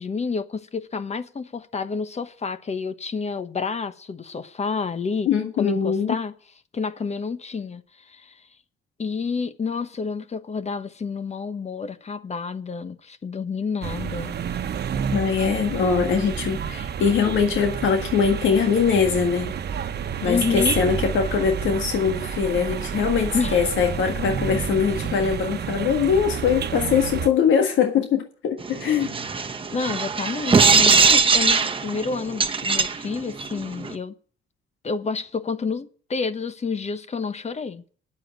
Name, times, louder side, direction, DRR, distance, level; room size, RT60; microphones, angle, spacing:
voice 1, 0.0-5.3 5.6-6.3 6.7-8.4 9.0-14.3 15.8-15.9 20.2-20.8 23.3-23.6 29.7-34.1 34.8-37.8, left 5 dB, 35° left, 1.1 m, -29 dB
voice 2, 5.3-6.2 15.1-19.6 20.2-29.1, left 6 dB, 75° left, 1.7 m, -22 dB
sound 1, 13.8-27.3, right 7 dB, 55° right, 1.1 m, -30 dB
sound 2, 28.6-33.9, right 5 dB, 25° right, 1.1 m, -20 dB
9.7 x 7.5 x 9.2 m
cardioid pair, 90°, 20 cm